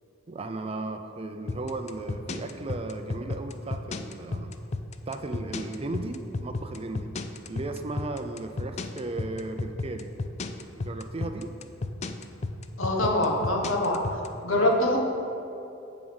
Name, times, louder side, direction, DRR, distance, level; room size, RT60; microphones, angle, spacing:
voice 1, 0.3-4.5 5.1-7.1 7.5-10.1 10.7-11.5 14.5-14.7, right 2 dB, 30° right, 6 dB, 0.5 m, -36 dB
sound 1, 1.5-14.3, left 3 dB, 35° left, 0.4 m, -32 dB
voice 2, 12.8-14.0 14.4-15.0, left 1 dB, 80° left, 0 dB, 1.3 m, -24 dB
7.1 x 5.0 x 7.0 m, 2.8 s
head